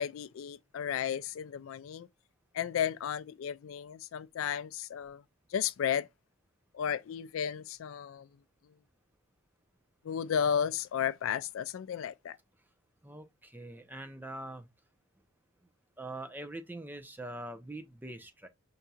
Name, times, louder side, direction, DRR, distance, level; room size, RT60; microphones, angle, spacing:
voice 1, 0.0-2.1 2.5-5.2 5.5-6.1 6.7-8.3 10.0-12.4, left 8 dB, 70° left, 0.3 m, -33 dB
voice 2, 13.0-14.7 16.0-18.5, right 1 dB, 10° right, 0.5 m, -43 dB
5.3 x 2.7 x 2.3 m
head